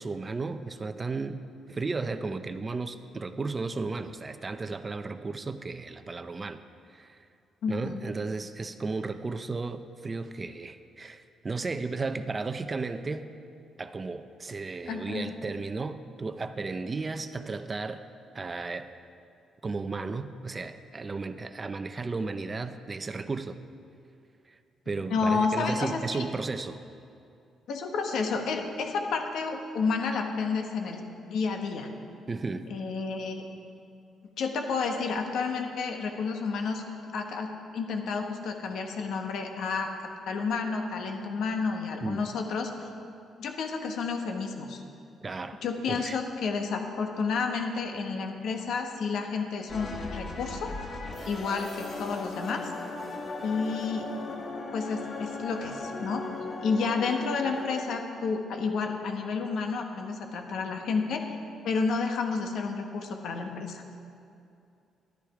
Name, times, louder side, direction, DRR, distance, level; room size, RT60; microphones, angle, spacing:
voice 1, 0.0-6.6 6.9-7.3 7.7-13.3 13.8-18.0 18.3-18.9 19.6-23.6 24.5-24.6 24.9-26.8 32.3-32.7 42.0-42.2 45.2-46.2, right 3 dB, 30° right, 10 dB, 0.5 m, -34 dB
voice 2, 7.6-8.0 14.9-15.3 25.1-26.3 27.7-31.0 31.3-31.9 32.7-33.4 34.4-36.8 37.1-39.9 40.3-42.7 43.4-44.8 45.6-50.7 51.2-52.7 53.4-54.1 54.7-56.2 56.6-61.3 61.6-63.8, left 4 dB, 75° left, 4 dB, 1.3 m, -30 dB
sound 1, 49.7-57.8, left 3 dB, 50° left, 1.7 m, -38 dB
11.5 x 10.5 x 4.9 m, 2.6 s
cardioid pair, 90°, 0 cm